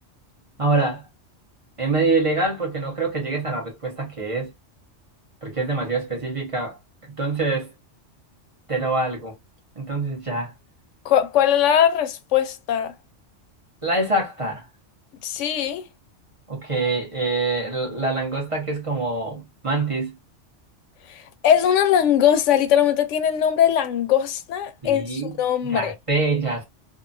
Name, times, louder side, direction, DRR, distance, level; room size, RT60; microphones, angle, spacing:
voice 1, 0.6-1.0 1.8-4.5 5.4-6.8 7.1-7.7 8.7-9.3 9.7-10.5 13.8-14.6 16.5-20.1 24.8-25.4 25.7-26.6, right 3 dB, 30° right, 1.0 m, -25 dB
voice 2, 11.0-12.9 15.2-15.8 21.1-25.1 25.4-25.9, left 9 dB, 85° left, 0.9 m, -20 dB
2.8 x 2.5 x 2.5 m
omnidirectional pair, 1.2 m